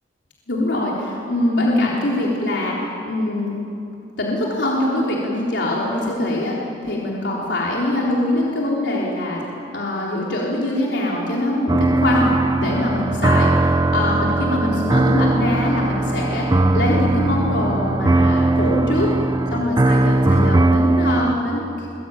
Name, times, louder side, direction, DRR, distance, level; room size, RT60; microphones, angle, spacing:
voice 1, 0.5-2.8 3.0-3.6 4.2-6.6 6.8-9.4 9.7-13.5 13.9-16.5 16.7-19.1 19.5-21.9, left 1 dB, 80° left, -4 dB, 3.8 m, -23 dB
sound 1, 11.7-21.3, right 2 dB, 20° right, 0.5 m, -19 dB
23.5 x 21.0 x 9.2 m, 2.8 s
head